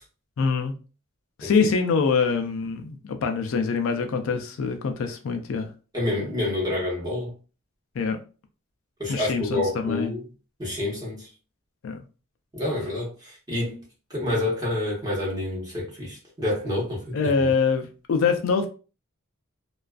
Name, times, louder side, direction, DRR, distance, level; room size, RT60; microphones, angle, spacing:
voice 1, 0.4-0.8 1.4-5.7 8.0-8.2 9.1-10.1 11.8-12.0 17.1-18.7, left 5 dB, 65° left, 0.3 m, -24 dB
voice 2, 5.9-7.3 9.0-10.2 10.6-11.3 12.5-13.8 14.1-17.5, left 1 dB, 15° right, 1.0 m, -28 dB
2.3 x 2.3 x 2.3 m
head